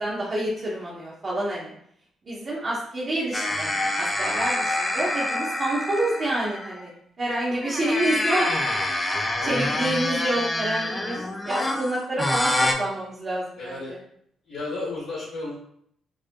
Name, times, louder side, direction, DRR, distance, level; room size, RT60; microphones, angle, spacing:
voice 1, 0.0-1.7 2.3-8.7 9.4-13.7, right 1 dB, 40° right, -7 dB, 0.6 m, -28 dB
sound 1, 3.3-6.9 7.5-12.7, left 1 dB, 10° left, 0.3 m, -26 dB
voice 2, 9.4-10.0 13.6-13.9 14.5-15.5, left 2 dB, 75° left, -4 dB, 0.6 m, -34 dB
2.3 x 2.1 x 2.6 m, 0.68 s
cardioid pair, 90°, 0 cm